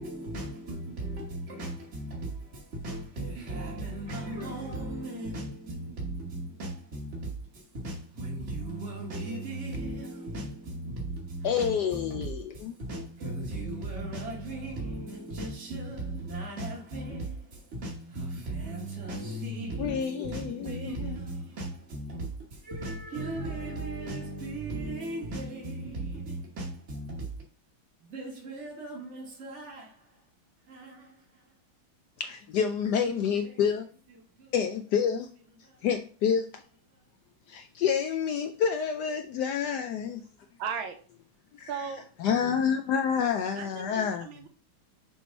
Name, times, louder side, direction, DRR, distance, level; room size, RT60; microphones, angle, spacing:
voice 1, 0.0-27.3 28.0-30.2 30.6-31.5 33.0-33.7 34.1-34.6 35.5-35.9 36.9-37.0, right 2 dB, 40° right, 1.3 m, -37 dB
voice 2, 11.4-12.4 12.6-12.7 19.8-20.6 32.2-33.9 34.5-35.3 35.8-36.5 37.5-40.2 41.6-41.7 42.2-44.3, left 7 dB, 85° left, 0.9 m, -28 dB
voice 3, 40.6-41.0 41.7-42.1 43.6-44.5, right 6 dB, 75° right, 1.6 m, -36 dB
6.2 x 3.1 x 5.1 m
omnidirectional pair, 2.3 m